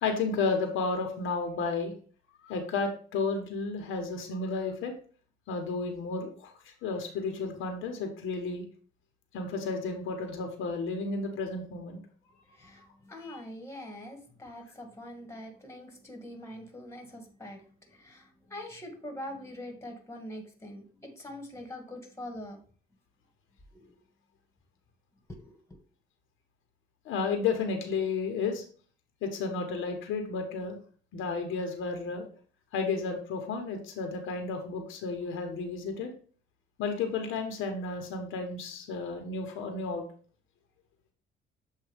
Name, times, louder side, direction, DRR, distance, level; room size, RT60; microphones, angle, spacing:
voice 1, 0.0-1.9 2.4-4.9 5.5-6.5 6.8-8.6 9.3-12.0 13.2-13.4 27.0-28.6 29.2-30.8 31.1-32.3 32.7-36.1 36.8-40.0, left 4 dB, 85° left, 4 dB, 1.2 m, -32 dB
voice 2, 12.5-17.6 17.9-22.6 23.7-23.9 25.4-25.8, left 1 dB, 15° left, 4 dB, 1.7 m, -44 dB
7.4 x 2.6 x 5.1 m, 0.43 s
cardioid pair, 90°, 20 cm